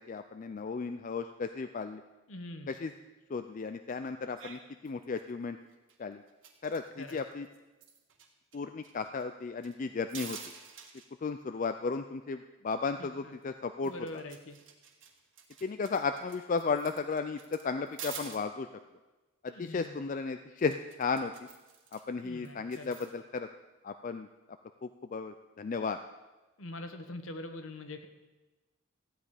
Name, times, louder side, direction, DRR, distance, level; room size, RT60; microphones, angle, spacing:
voice 1, 0.0-2.0 2.7-2.9 3.3-5.6 6.0-6.2 6.6-7.5 8.5-10.4 11.2-13.9 15.6-18.7 19.6-21.3 21.9-23.5 23.8-24.3 25.1-26.0, left 4 dB, 40° left, 8 dB, 0.4 m, -34 dB
voice 2, 2.3-2.8 7.0-7.2 13.0-13.3 13.8-14.6 19.5-20.0 22.2-23.0 26.6-28.1, left 1 dB, 70° left, 7 dB, 1.1 m, -44 dB
sound 1, 4.4-4.6 4.9-5.3 5.7-6.0 6.3-8.3 8.5-8.6 8.8-9.7 10.1-11.1 13.4-13.5 13.8-18.4 20.6-22.0 22.4-23.2, right 7 dB, 60° right, 1.7 m, -48 dB
15.0 x 9.2 x 4.9 m, 1.1 s
head